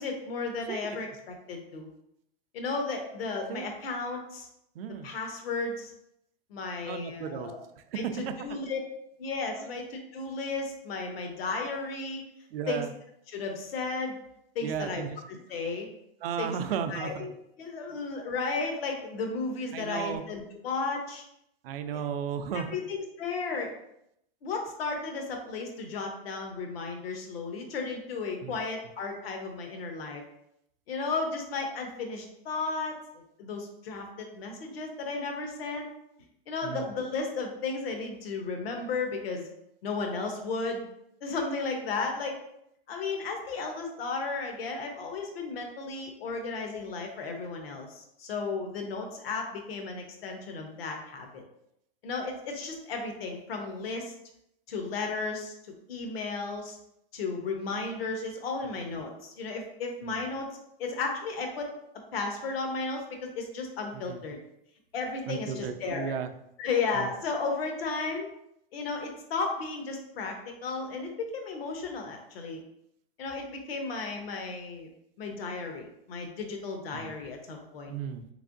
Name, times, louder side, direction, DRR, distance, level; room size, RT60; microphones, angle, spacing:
voice 1, 0.0-1.9 2.5-4.5 5.0-5.9 6.5-7.6 7.9-8.8 9.2-12.2 12.7-12.8 13.3-14.2 14.5-15.0 15.5-15.9 16.4-16.5 16.9-17.3 17.6-21.3 21.9-22.0 22.7-23.7 24.4-30.2 30.9-32.9 33.4-35.9 36.5-39.5 39.8-40.8 41.2-42.3 42.9-51.4 52.0-54.1 54.7-55.5 55.9-56.8 57.1-60.5 60.8-61.7 62.1-64.4 64.9-66.1 66.6-68.3 68.7-70.3 70.6-72.6 73.2-74.9 75.2-77.9, left 4 dB, 75° left, 3 dB, 0.9 m, -34 dB
voice 2, 4.7-5.1 6.8-8.0 12.5-12.9 14.6-15.2 16.2-17.3 19.7-20.2 21.6-22.8 28.4-28.6 36.6-36.9 60.0-60.2 63.9-64.2 65.3-66.3 66.9-67.1 77.0-77.1 77.9-78.2, right 8 dB, 70° right, 8 dB, 0.5 m, -35 dB
3.5 x 3.2 x 2.5 m, 0.78 s
hypercardioid pair, 135°, 30 cm